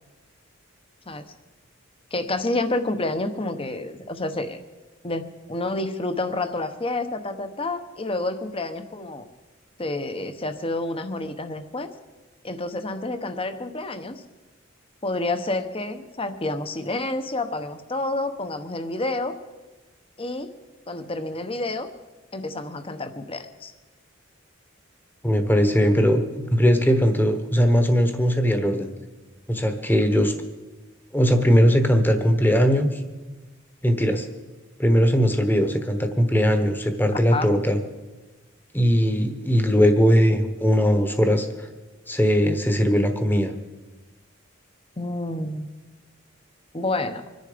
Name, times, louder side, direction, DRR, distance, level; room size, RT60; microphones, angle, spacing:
voice 1, 2.1-4.6 5.0-9.3 9.8-11.9 12.4-14.2 15.0-19.4 20.2-20.5 20.9-21.9 22.3-23.7 37.1-37.5 45.0-45.7 46.7-47.2, left 2 dB, 25° left, 9 dB, 1.0 m, -29 dB
voice 2, 25.2-28.9 29.5-30.3 31.1-33.0 33.8-34.3 34.8-37.8 38.7-41.7 42.1-43.5, equal, 10° left, 7 dB, 1.2 m, -20 dB
24.5 x 10.5 x 5.1 m, 1.2 s
head